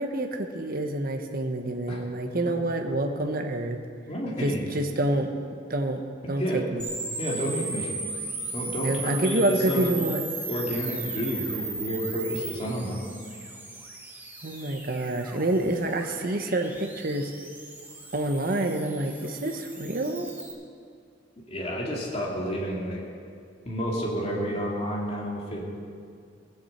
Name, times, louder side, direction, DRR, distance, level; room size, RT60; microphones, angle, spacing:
voice 1, 0.0-3.8 4.4-5.3 5.7-6.0 6.3-6.9 8.8-10.2 14.4-17.3 18.1-20.3, right 1 dB, 50° right, 5 dB, 1.1 m, -27 dB
voice 2, 4.1-4.6 6.4-6.6 7.2-7.9 8.5-9.9 10.5-13.0 21.5-23.0 23.6-25.6, equal, 35° left, -3 dB, 2.7 m, -30 dB
sound 1, 6.8-20.5, right 3 dB, 10° right, 1.6 m, -37 dB
18.0 x 7.2 x 7.9 m, 2.2 s
head